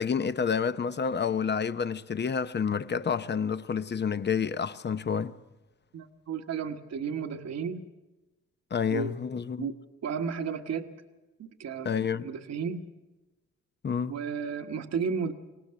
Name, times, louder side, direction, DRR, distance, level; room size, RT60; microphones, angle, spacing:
voice 1, 0.0-5.3 8.7-9.7 11.8-12.3 13.8-14.1, left 6 dB, 35° left, 0.9 m, -29 dB
voice 2, 5.9-7.8 8.9-9.1 9.6-9.7 10.0-10.9 11.4-11.9 12.2-12.8 14.1-15.3, right 6 dB, 60° right, 1.4 m, -33 dB
24.5 x 18.0 x 7.6 m
cardioid pair, 90°, 30 cm